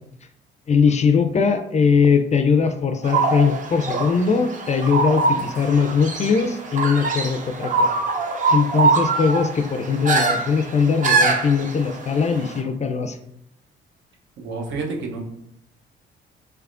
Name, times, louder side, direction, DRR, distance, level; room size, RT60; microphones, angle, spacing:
voice 1, 0.7-7.9 8.5-13.2, left 5 dB, 35° left, 8 dB, 0.4 m, -20 dB
sound 1, 3.0-12.6, right 3 dB, 40° right, 0.6 m, -23 dB
voice 2, 14.4-15.2, right 3 dB, 70° right, 1 dB, 0.8 m, -30 dB
3.4 x 3.2 x 2.4 m, 0.76 s
cardioid pair, 90°, 20 cm